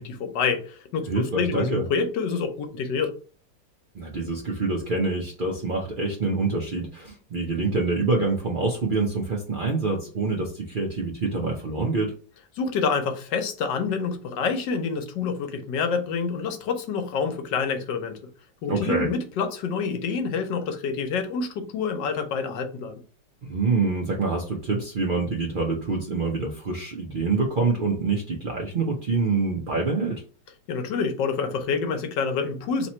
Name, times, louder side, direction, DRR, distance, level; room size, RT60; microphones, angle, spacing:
voice 1, 0.0-3.1 12.6-18.2 18.6-23.0 30.7-32.9, left 5 dB, 80° left, 1.4 m, -27 dB
voice 2, 1.1-1.9 3.9-12.1 18.7-19.1 23.4-30.2, right 3 dB, 75° right, 0.4 m, -26 dB
3.2 x 3.0 x 4.2 m
omnidirectional pair, 1.9 m